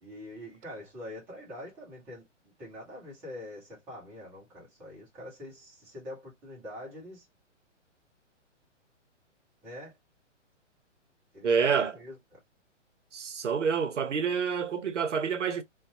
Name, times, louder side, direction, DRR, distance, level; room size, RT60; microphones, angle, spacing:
voice 1, 0.0-2.2 2.6-7.3 9.6-9.9 11.3-12.4, left 1 dB, 5° right, 0.5 m, -44 dB
voice 2, 11.4-12.0 13.1-15.6, right 6 dB, 70° right, 0.6 m, -28 dB
2.5 x 2.1 x 2.5 m
figure-of-eight pair, 120°, 37 cm